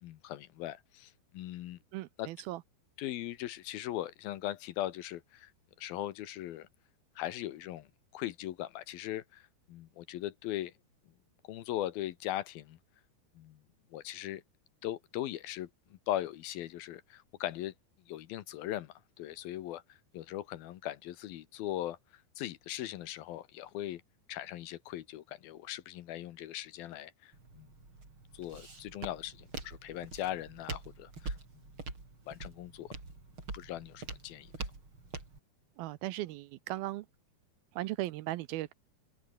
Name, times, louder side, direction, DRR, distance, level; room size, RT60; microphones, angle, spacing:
voice 1, 0.0-1.8 2.2-2.3 3.0-5.5 5.8-6.7 7.2-7.9 8.1-9.4 9.7-10.7 11.5-12.8 13.4-13.6 13.9-14.4 14.8-17.7 18.1-19.8 20.1-22.0 22.4-24.0 24.3-27.7 28.3-31.4 32.3-32.9 33.5-34.5, left 13 dB, 70° left, 2.7 m, -39 dB
voice 2, 1.9-2.6 35.8-37.1 37.7-38.7, right 16 dB, 75° right, 2.5 m, -37 dB
Walk footsteps, 27.3-35.4, right 3 dB, 30° right, 6.4 m, -45 dB
open air
omnidirectional pair, 4.6 m